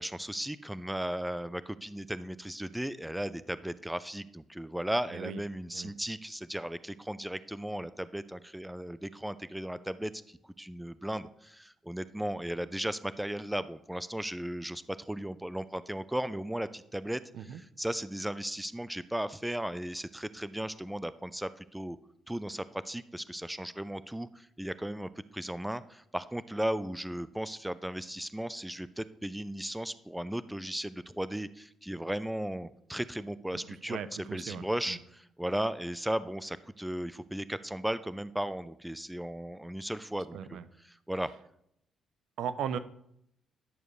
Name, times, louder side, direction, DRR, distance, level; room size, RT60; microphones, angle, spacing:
voice 1, 0.0-22.0 22.3-34.0 34.3-40.6 40.9-41.3, right 1 dB, 5° right, 15 dB, 0.4 m, -36 dB
voice 2, 5.1-5.4 5.7-5.9 17.3-17.6 33.5-35.0 40.3-40.6 42.4-42.8, right 8 dB, 75° right, 13 dB, 0.6 m, -38 dB
11.0 x 6.7 x 3.2 m, 0.73 s
cardioid pair, 90°, 0 cm